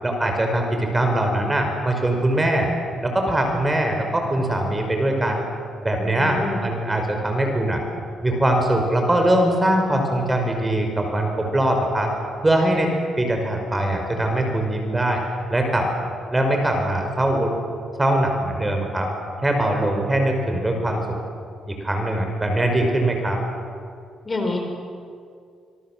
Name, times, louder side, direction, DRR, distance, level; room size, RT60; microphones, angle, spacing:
voice 1, 0.0-2.7 3.0-5.5 5.8-7.8 8.2-12.1 12.4-12.9 13.2-15.2 15.5-15.9 16.3-17.5 18.0-19.1 19.4-21.0 21.7-23.4, right 1 dB, 15° right, 3 dB, 5.4 m, -22 dB
voice 2, 6.2-6.6 24.2-24.6, left 3 dB, 30° left, 3 dB, 5.1 m, -26 dB
26.5 x 22.5 x 7.6 m, 2.2 s
cardioid pair, 90°, 0 cm